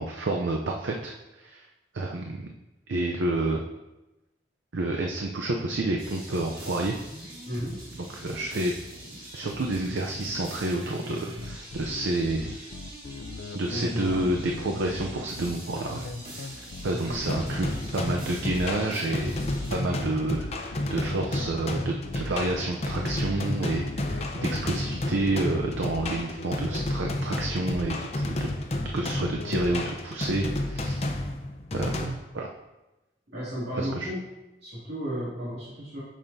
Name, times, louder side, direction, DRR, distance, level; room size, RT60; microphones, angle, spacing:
voice 1, 0.0-1.6 1.9-2.5 2.9-3.6 4.7-7.0 8.1-8.7 9.3-12.5 13.5-16.0 16.4-17.7 17.9-19.3 19.7-28.5 28.9-31.0 31.7-32.5 33.8-34.1, right 2 dB, 90° right, 1 dB, 0.6 m, -29 dB
sound 1, 6.0-19.7, equal, 45° right, 2.3 m, -43 dB
voice 2, 7.5-7.8 13.7-14.3 16.9-17.3 33.3-34.2 34.6-36.0, equal, 70° right, -11 dB, 2.3 m, -33 dB
sound 2, 11.4-29.9, left 3 dB, 90° left, 0.5 m, -40 dB
sound 3, 17.3-32.1, left 1 dB, 35° left, 0.6 m, -31 dB
8.7 x 6.3 x 2.7 m, 1.0 s
head